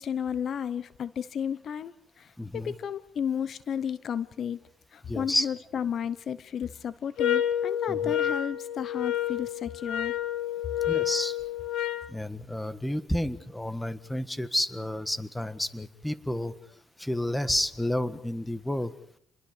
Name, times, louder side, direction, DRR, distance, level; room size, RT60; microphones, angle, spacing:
voice 1, 0.0-4.6 4.9-10.1, left 8 dB, 55° left, 16 dB, 0.8 m, -33 dB
voice 2, 2.4-2.7 5.0-5.5 7.9-8.1 10.9-11.4 12.1-16.5 17.0-18.9, left 1 dB, 5° left, 12 dB, 1.5 m, -30 dB
sound 1, 7.2-12.1, left 10 dB, 80° left, 1.4 m, -29 dB
29.0 x 21.5 x 5.1 m, 0.69 s
cardioid pair, 95°, 0 cm